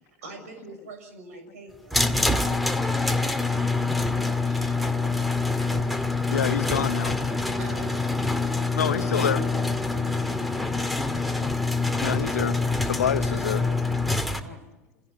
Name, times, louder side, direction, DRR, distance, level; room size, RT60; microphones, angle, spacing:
voice 1, 0.0-3.1 4.9-5.3 7.6-8.4 14.4-14.7, right 2 dB, 75° right, 6.4 m, -46 dB
sound 1, 1.9-14.4, left 3 dB, ahead, 2.2 m, -25 dB
voice 2, 4.4-5.1 5.6-6.1 7.3-7.4, left 14 dB, 50° left, 1.8 m, -51 dB
voice 3, 6.3-7.2 8.7-9.5 12.0-12.6 12.8-13.6, left 9 dB, 80° left, 1.0 m, -27 dB
28.5 x 17.5 x 9.3 m
hypercardioid pair, 80°, 8 cm